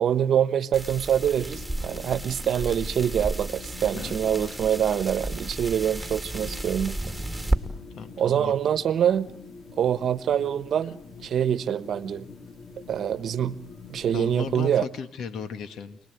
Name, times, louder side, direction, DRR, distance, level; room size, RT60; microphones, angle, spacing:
voice 1, 0.0-7.0 8.2-9.3 9.8-12.3 12.9-13.6 13.9-14.9, right 9 dB, 65° right, 1.1 m, -25 dB
sound 1, 0.7-7.6, right 1 dB, ahead, 3.2 m, -32 dB
sound 2, 1.4-14.9, left 4 dB, 55° left, 3.5 m, -46 dB
voice 2, 3.9-4.6 8.0-8.5 14.1-16.0, left 6 dB, 75° left, 1.8 m, -36 dB
29.5 x 20.5 x 9.3 m
cardioid pair, 90°, 0 cm